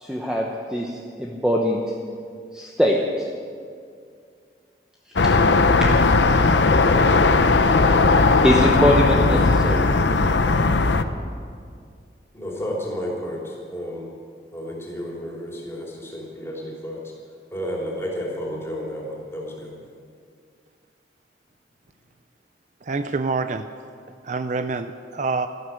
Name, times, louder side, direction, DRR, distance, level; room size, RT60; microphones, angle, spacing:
voice 1, 0.0-0.9 1.2-1.8 2.5-3.0 5.8-5.9 8.4-9.9, equal, 5° right, -2 dB, 1.1 m, -21 dB
sound 1, 5.2-11.0, left 3 dB, 75° left, 0.8 m, -17 dB
voice 2, 12.3-14.1 14.5-17.0 17.5-19.7, equal, 15° left, -3 dB, 3.5 m, -31 dB
voice 3, 22.8-23.7 24.2-25.5, right 3 dB, 40° right, 9 dB, 0.4 m, -26 dB
14.0 x 12.5 x 7.8 m, 2.2 s
head